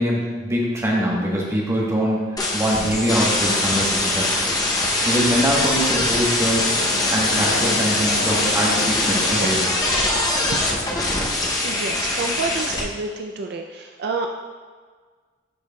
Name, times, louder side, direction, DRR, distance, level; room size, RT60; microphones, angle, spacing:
voice 1, 0.0-4.5 5.0-9.7, equal, 15° right, -4 dB, 1.1 m, -23 dB
sound 1, 2.4-12.8, left 2 dB, 20° left, 0.6 m, -22 dB
sound 2, 6.3-11.4, left 2 dB, 60° left, 0.5 m, -31 dB
voice 2, 10.4-10.8 11.6-14.3, right 3 dB, 60° right, 3 dB, 0.4 m, -29 dB
10.5 x 4.6 x 2.2 m, 1.5 s
head